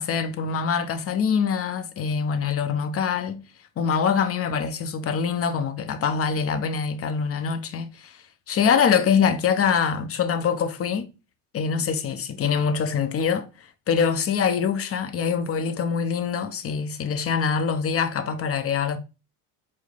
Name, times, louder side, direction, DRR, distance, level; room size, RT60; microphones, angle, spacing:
voice 1, 0.0-3.4 3.8-11.1 11.5-13.5 13.9-19.0, left 6 dB, 30° left, 0.6 m, -24 dB
4.6 x 2.1 x 3.5 m
hypercardioid pair, 80°, 48 cm